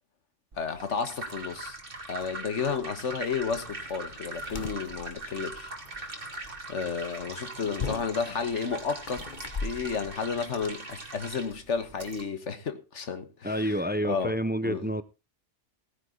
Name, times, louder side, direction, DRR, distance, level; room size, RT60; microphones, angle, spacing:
voice 1, 0.5-1.8 2.1-6.3 6.7-9.2 9.6-13.7 14.0-14.3 14.6-14.8, left 5 dB, 75° left, 1.7 m, -32 dB
sound 1, 0.5-12.2, right 2 dB, 50° right, 2.2 m, -41 dB
sound 2, 3.4-10.7, left 4 dB, 40° left, 1.2 m, -41 dB
voice 2, 13.4-15.0, equal, 15° right, 0.4 m, -28 dB
16.0 x 9.6 x 3.9 m
omnidirectional pair, 1.2 m